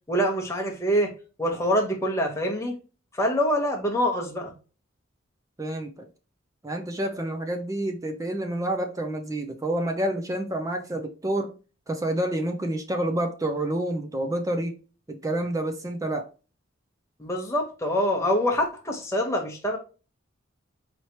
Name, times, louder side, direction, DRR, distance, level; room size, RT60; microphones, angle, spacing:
voice 1, 0.1-1.1 1.4-2.7 3.1-4.5 17.2-19.8, equal, 15° left, 1.0 m, -25 dB
voice 2, 5.6-6.1 6.6-11.5 11.9-14.7 15.1-16.3, right 1 dB, 15° right, 0.5 m, -28 dB
4.3 x 3.2 x 2.9 m
head